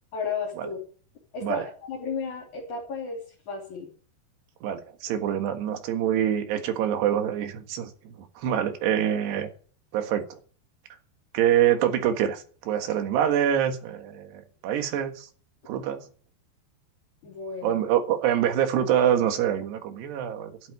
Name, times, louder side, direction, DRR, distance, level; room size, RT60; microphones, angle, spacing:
voice 1, 0.1-0.8 1.3-3.9 17.2-17.8, left 5 dB, 50° left, -2 dB, 4.4 m, -34 dB
voice 2, 4.6-9.5 9.9-10.4 11.3-15.3 15.7-16.0 17.6-20.5, right 10 dB, 80° right, 7 dB, 3.7 m, -25 dB
11.5 x 8.5 x 9.9 m, 0.44 s
omnidirectional pair, 4.8 m